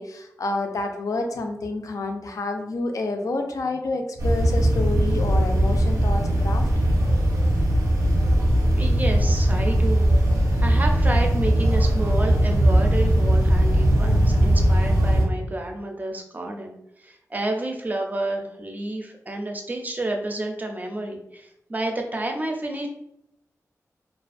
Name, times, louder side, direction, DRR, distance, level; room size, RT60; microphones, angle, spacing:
voice 1, 0.0-6.7, left 2 dB, 70° left, 4 dB, 0.4 m, -29 dB
sound 1, 4.2-15.3, right 1 dB, 85° right, 0.6 m, -19 dB
voice 2, 8.8-22.9, right 1 dB, 30° right, 3 dB, 0.4 m, -30 dB
2.4 x 2.2 x 2.4 m, 0.78 s
wide cardioid pair, 90°, 6 cm